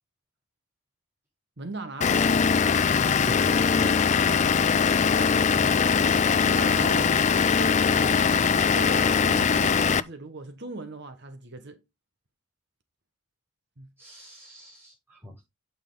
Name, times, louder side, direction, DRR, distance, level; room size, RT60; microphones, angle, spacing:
voice 1, 1.6-2.3 4.8-6.1 6.4-7.2 7.6-8.3 8.7-11.8 13.8-13.9, right 2 dB, 50° right, 1.3 m, -39 dB
Vehicle / Engine, 2.0-10.0, left 6 dB, 30° left, 0.4 m, -21 dB
voice 2, 3.2-4.0 14.0-15.4, left 1 dB, 10° right, 5.6 m, -41 dB
9.1 x 5.6 x 3.9 m
head